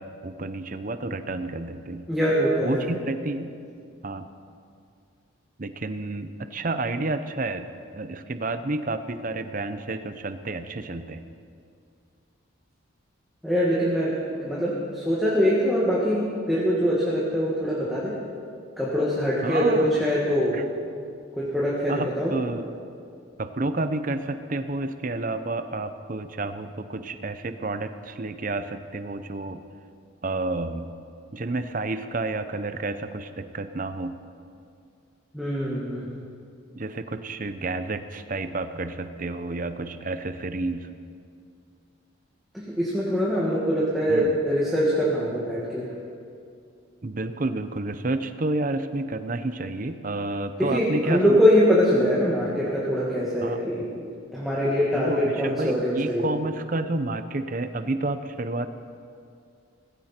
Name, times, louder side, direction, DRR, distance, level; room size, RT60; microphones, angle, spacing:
voice 1, 0.0-2.1 2.6-3.6 4.0-4.3 5.6-11.2 19.4-20.0 20.5-20.6 21.9-22.7 23.4-29.6 30.2-30.9 31.3-34.1 36.8-40.9 44.1-44.4 47.0-51.4 53.4-53.6 55.1-58.7, right 2 dB, 40° right, 10 dB, 0.7 m, -30 dB
voice 2, 2.1-2.9 13.4-18.1 18.8-20.6 20.8-21.0 21.3-22.3 35.3-36.1 42.5-45.9 50.6-53.9 54.3-56.2, equal, ahead, -7 dB, 2.0 m, -23 dB
18.5 x 16.0 x 4.4 m, 2.3 s
head